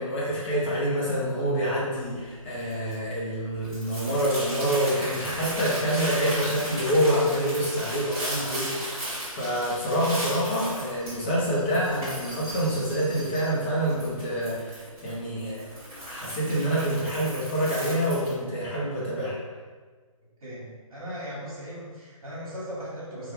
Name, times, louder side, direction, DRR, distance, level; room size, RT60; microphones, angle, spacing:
voice 1, 0.0-9.0 9.3-15.6 16.0-19.4, equal, 20° left, -7 dB, 0.7 m, -27 dB
Crumpling crinkling, 1.9-18.4, right 1 dB, 10° right, 1.2 m, -37 dB
voice 2, 20.4-23.3, equal, 65° right, -8 dB, 1.2 m, -38 dB
2.7 x 2.3 x 3.2 m, 1.4 s
figure-of-eight pair, 150°, 18 cm